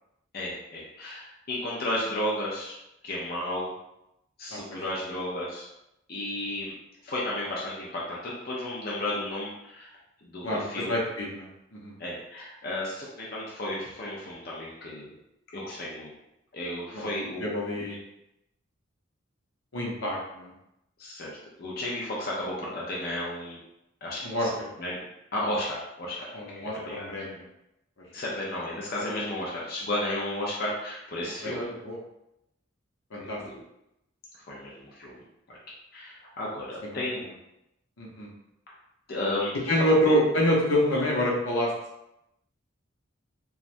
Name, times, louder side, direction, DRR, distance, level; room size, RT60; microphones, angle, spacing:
voice 1, 0.3-2.8 3.0-3.7 4.4-5.7 6.1-6.8 7.0-9.9 10.2-11.0 12.0-15.1 15.5-16.1 16.5-17.8 21.0-23.6 24.0-25.0 25.3-26.3 26.6-27.3 28.1-31.7 33.2-33.6 34.4-35.6 35.9-37.2 39.1-40.1 40.9-41.0, left 1 dB, 50° left, -5 dB, 0.6 m, -33 dB
voice 2, 4.5-4.8 10.4-11.5 11.7-11.9 16.9-17.1 17.4-18.0 19.7-20.5 24.2-24.5 26.3-27.4 31.4-32.0 33.1-33.4 36.9-37.0 38.0-38.3 39.7-41.7, equal, 85° left, -3 dB, 0.8 m, -27 dB
3.1 x 2.3 x 2.5 m, 0.85 s
head